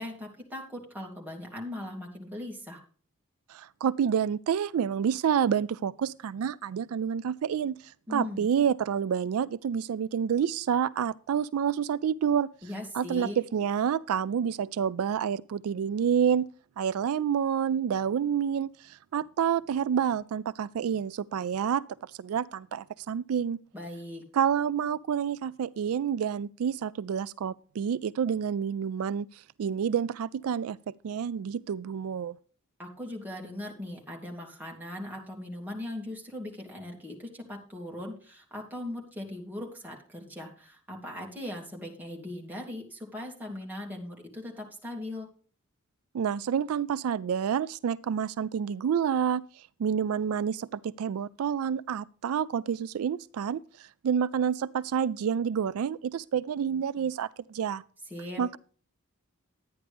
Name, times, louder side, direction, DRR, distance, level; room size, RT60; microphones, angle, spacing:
voice 1, 0.0-2.8 8.1-8.5 12.6-13.4 23.7-24.2 32.8-45.3 58.1-58.4, left 1 dB, 10° right, 2.5 m, -39 dB
voice 2, 3.5-12.5 12.9-16.5 16.8-23.6 24.3-32.4 46.1-57.8 58.4-58.6, right 8 dB, 80° right, 0.3 m, -28 dB
11.5 x 9.5 x 3.4 m
head